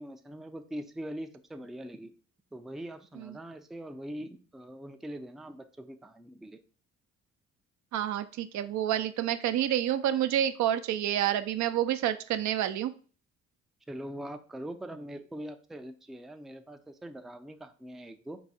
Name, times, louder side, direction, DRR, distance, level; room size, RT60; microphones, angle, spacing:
voice 1, 0.0-2.1 2.5-6.6 13.9-18.4, right 1 dB, ahead, 7 dB, 0.4 m, -42 dB
voice 2, 7.9-12.9, right 11 dB, 70° right, 10 dB, 0.5 m, -28 dB
4.7 x 2.6 x 4.1 m, 0.40 s
cardioid pair, 90°, 30 cm